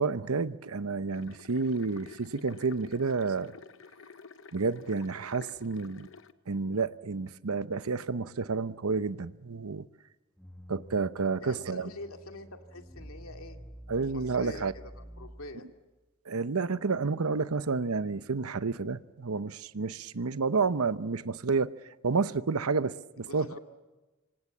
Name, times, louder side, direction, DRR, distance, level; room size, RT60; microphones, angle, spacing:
voice 1, 0.0-3.5 4.5-6.1 6.5-9.9 10.7-11.9 13.9-14.7 16.3-21.7 22.0-23.5, right 4 dB, 85° right, 0.8 m, -30 dB
sound 1, 1.1-6.3, left 5 dB, 60° left, 0.9 m, -51 dB
sound 2, 10.4-15.8, equal, 5° left, 1.1 m, -49 dB
voice 2, 11.4-13.6 14.1-15.7 23.3-23.6, left 2 dB, 80° left, 2.3 m, -45 dB
26.5 x 25.0 x 7.4 m
head